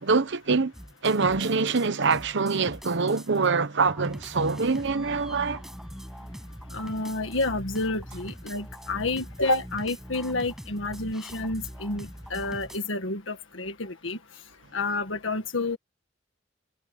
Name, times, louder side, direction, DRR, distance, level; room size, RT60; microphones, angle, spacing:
voice 1, 0.0-0.7 1.0-5.6, right 4 dB, 65° right, 1.0 m, -24 dB
sound 1, 0.7-3.5 3.9-12.8, equal, ahead, 6.3 m, -42 dB
voice 2, 6.7-14.2 14.7-15.8, left 2 dB, 75° left, 1.7 m, -29 dB
head